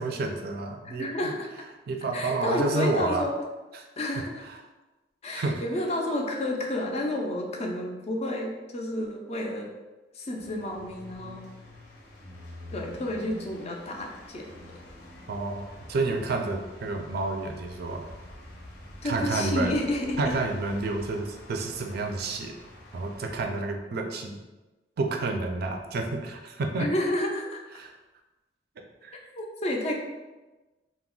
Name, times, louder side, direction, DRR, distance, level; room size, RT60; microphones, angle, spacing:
voice 1, 0.0-1.3 1.9-3.3 3.7-3.9 5.3-5.6 15.3-18.0 19.0-19.7 20.2-22.5 22.9-24.4 25.0-26.9 27.8-27.9 29.0-29.2, right 2 dB, 60° right, 3 dB, 0.4 m, -29 dB
voice 2, 0.8-1.5 2.1-3.4 4.0-4.4 5.2-9.7 10.1-11.4 12.7-14.5 19.0-20.3 26.8-27.6 29.3-29.9, left 1 dB, 35° left, 1 dB, 0.4 m, -30 dB
sound 1, 10.3-23.4, left 1 dB, 75° left, 0.8 m, -47 dB
2.3 x 2.0 x 3.7 m, 1.1 s
head